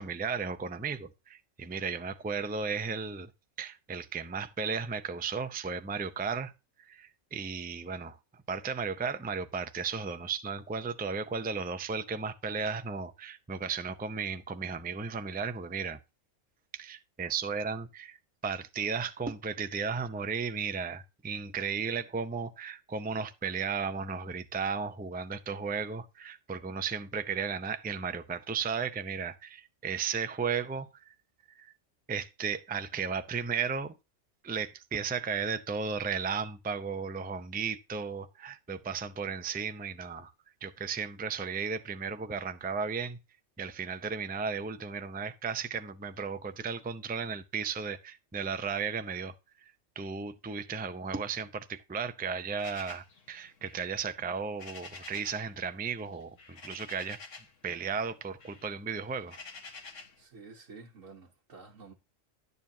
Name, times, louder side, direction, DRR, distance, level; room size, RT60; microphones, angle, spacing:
voice 1, 0.0-3.3 3.6-6.5 6.8-8.2 8.5-16.0 16.7-31.1 31.5-31.7 32.1-34.0 34.4-40.3 40.6-43.2 43.6-49.3 50.0-57.2 57.6-59.4, right 5 dB, 15° right, 0.4 m, -35 dB
sound 1, 52.6-55.5 55.8-57.6 58.0-60.2, left 4 dB, 75° left, 1.7 m, -49 dB
voice 2, 60.2-61.9, right 4 dB, 75° right, 1.6 m, -50 dB
11.0 x 9.4 x 2.8 m
omnidirectional pair, 1.3 m